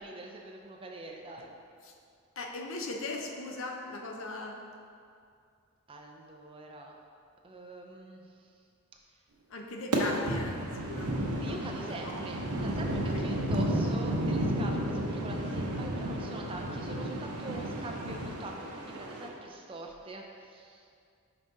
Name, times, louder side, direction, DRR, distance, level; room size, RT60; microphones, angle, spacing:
voice 1, 0.0-1.6 5.9-7.0 7.4-8.5 10.2-10.4 11.4-20.9, right 2 dB, 25° right, 1 dB, 0.5 m, -44 dB
voice 2, 2.4-4.6 9.5-10.6 10.9-11.6 11.9-12.1 13.1-13.5, left 2 dB, 60° left, 2 dB, 0.6 m, -39 dB
sound 1, 9.9-19.3, right 1 dB, 85° right, 0.8 m, -32 dB
5.9 x 5.1 x 3.9 m, 2.3 s
head